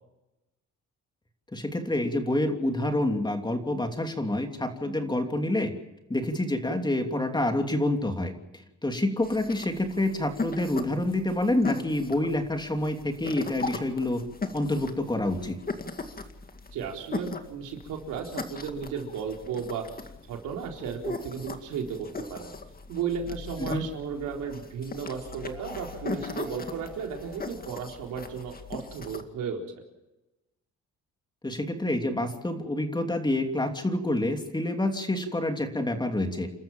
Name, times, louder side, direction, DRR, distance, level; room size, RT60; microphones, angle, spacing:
voice 1, 1.5-5.7 6.1-8.3 8.8-14.2 14.5-15.6 23.6-23.8 31.4-36.5, left 1 dB, 15° left, 5 dB, 3.0 m, -27 dB
sound 1, 9.2-29.2, left 3 dB, 30° left, 2.2 m, -39 dB
voice 2, 16.7-19.9 20.3-22.5 22.9-29.6, right 6 dB, 85° right, 1 dB, 4.0 m, -34 dB
sound 2, 24.9-28.5 28.8-28.9 29.2-29.3, right 3 dB, 5° right, 6.5 m, -51 dB
29.5 x 13.5 x 7.5 m, 0.99 s
cardioid pair, 90°, 30 cm